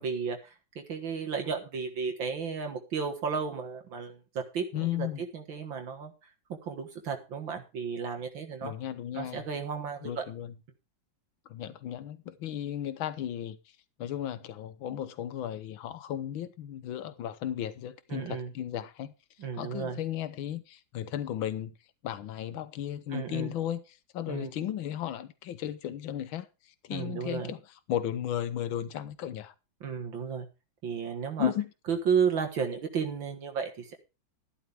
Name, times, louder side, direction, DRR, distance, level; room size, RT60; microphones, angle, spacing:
voice 1, 0.0-5.1 5.3-8.7 9.1-10.2 18.1-18.5 19.4-20.0 23.1-23.5 24.3-24.5 26.9-27.5 29.8-30.5 30.8-31.5 31.9-34.0, right 6 dB, 70° right, 2.3 m, -33 dB
voice 2, 4.7-5.2 8.6-9.5 10.0-10.5 11.5-13.6 14.0-19.1 19.5-21.7 22.0-27.6 27.9-29.5 31.4-31.7, left 11 dB, 80° left, 1.7 m, -35 dB
12.5 x 11.5 x 3.4 m
omnidirectional pair, 2.2 m